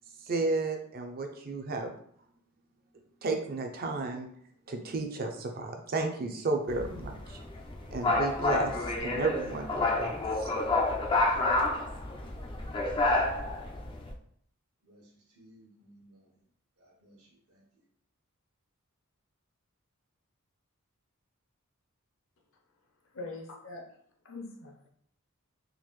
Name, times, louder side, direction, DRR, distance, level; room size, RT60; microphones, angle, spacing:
voice 1, 0.2-1.9 3.2-4.3 4.7-7.4 7.9-10.5, right 3 dB, 45° right, 0.5 m, -33 dB
sound 1, 6.7-14.1, left 2 dB, 25° left, 0.3 m, -29 dB
voice 2, 14.8-16.3 16.8-17.6, right 1 dB, 75° right, 1.1 m, -59 dB
voice 3, 23.1-23.8 24.2-24.9, left 3 dB, 60° left, 0.7 m, -42 dB
3.7 x 2.5 x 3.1 m
head